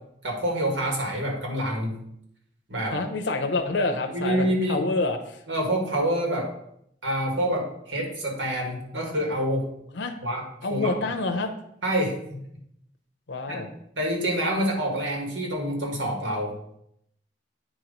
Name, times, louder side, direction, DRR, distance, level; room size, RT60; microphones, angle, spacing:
voice 1, 0.2-2.0 2.7-3.0 4.1-4.8 5.5-6.5 7.0-9.7 10.2-10.4 10.7-10.9 11.8-12.4 13.5-13.6 14.0-16.6, right 1 dB, 80° right, 1 dB, 1.7 m, -27 dB
voice 2, 2.9-5.4 9.9-10.1 10.6-11.5 13.3-13.7, left 3 dB, 75° left, 4 dB, 0.7 m, -27 dB
9.0 x 3.1 x 5.2 m, 0.73 s
head